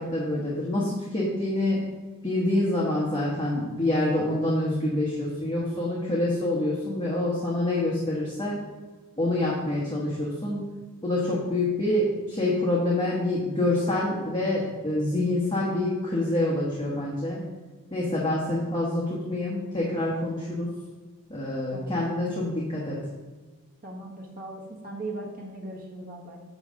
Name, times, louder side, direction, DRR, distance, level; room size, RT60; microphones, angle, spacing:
voice 1, 0.0-1.8 2.2-8.6 9.2-10.7 11.0-17.4 17.9-20.7 21.3-23.1, left 1 dB, 20° left, -6 dB, 1.2 m, -26 dB
voice 2, 23.8-26.4, right 2 dB, 40° right, 0 dB, 1.3 m, -39 dB
9.1 x 3.2 x 6.2 m, 1.3 s
head